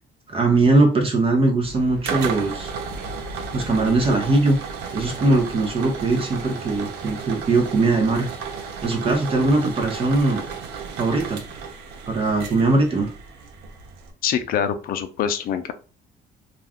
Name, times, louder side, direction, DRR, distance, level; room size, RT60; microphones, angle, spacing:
voice 1, 0.3-2.7 3.5-8.3 8.8-10.4 11.0-11.4 12.1-13.1, right 2 dB, 35° right, 2 dB, 0.6 m, -20 dB
sound 1, 1.6-14.1, right 5 dB, 80° right, 0.6 m, -33 dB
voice 2, 14.2-15.7, left 8 dB, 60° left, 10 dB, 0.4 m, -24 dB
2.4 x 2.2 x 3.4 m, 0.36 s
cardioid pair, 110°, 17 cm